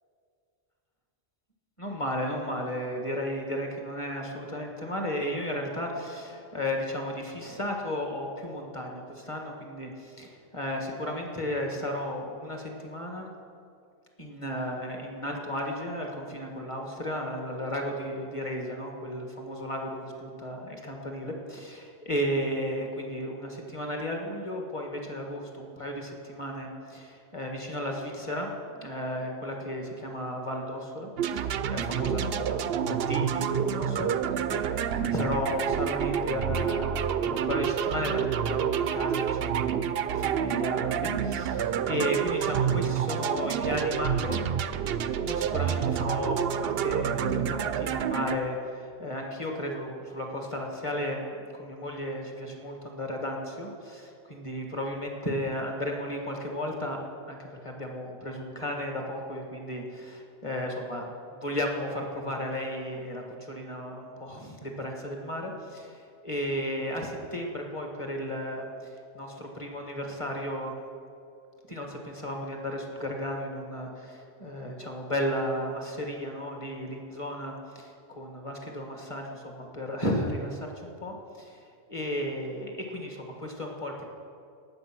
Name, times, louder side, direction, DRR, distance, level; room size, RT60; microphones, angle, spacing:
voice 1, 1.8-13.3 14.2-44.4 45.3-57.0 57.3-68.7 69.1-70.8 71.7-81.6 81.9-84.0, equal, 25° left, 1 dB, 1.6 m, -34 dB
sound 1, 31.2-48.4, right 8 dB, 65° right, 0.7 m, -28 dB
17.5 x 6.8 x 6.1 m, 2.4 s
omnidirectional pair, 1.3 m